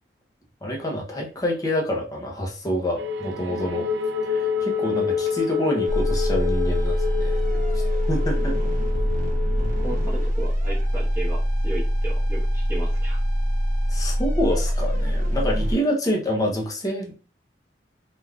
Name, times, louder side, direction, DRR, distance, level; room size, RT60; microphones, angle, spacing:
voice 1, 0.6-3.9 4.2-8.7 13.9-17.1, equal, 20° left, 0 dB, 0.6 m, -27 dB
sound 1, 3.0-10.3, left 6 dB, 75° right, 0.4 m, -28 dB
sound 2, 5.9-15.7, equal, 45° right, 0.9 m, -23 dB
voice 2, 9.8-13.2, right 2 dB, 15° right, -6 dB, 1.0 m, -35 dB
3.3 x 2.4 x 2.3 m, 0.34 s
head